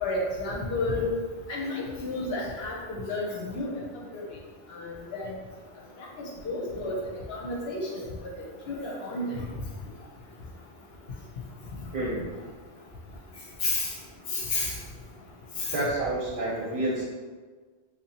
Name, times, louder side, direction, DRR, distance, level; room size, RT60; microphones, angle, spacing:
voice 1, 0.0-1.1 1.5-3.7 4.1-4.2 4.7-5.3 6.4-7.0 7.3-8.0 8.7-9.3 13.6-13.9 14.3-14.7 15.6-15.7, left 2 dB, 60° left, -2 dB, 0.8 m, -31 dB
voice 2, 11.9-12.2 15.7-17.0, right 1 dB, 50° right, -5 dB, 0.8 m, -29 dB
3.7 x 2.8 x 2.8 m, 1.5 s
omnidirectional pair, 1.3 m